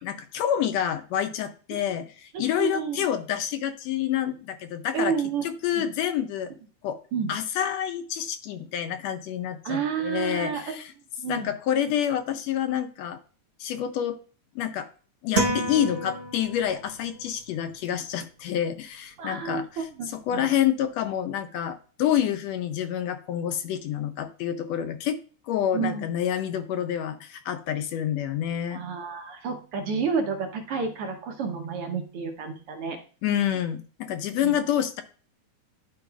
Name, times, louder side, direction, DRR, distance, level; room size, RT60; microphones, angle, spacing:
voice 1, 0.0-5.2 5.4-6.5 6.8-7.0 7.3-10.9 11.3-13.2 13.6-14.2 14.5-14.9 15.2-25.2 25.5-28.8 33.2-35.0, left 10 dB, 80° left, 9 dB, 1.7 m, -28 dB
voice 2, 2.3-3.1 4.9-5.9 7.1-7.3 9.6-10.8 11.2-11.5 19.2-20.5 25.7-26.1 28.7-33.0 34.4-34.6, right 6 dB, 70° right, 4 dB, 1.4 m, -30 dB
sound 1, 15.4-16.9, right 2 dB, 45° right, 2.1 m, -28 dB
11.5 x 4.7 x 2.3 m, 0.38 s
omnidirectional pair, 3.4 m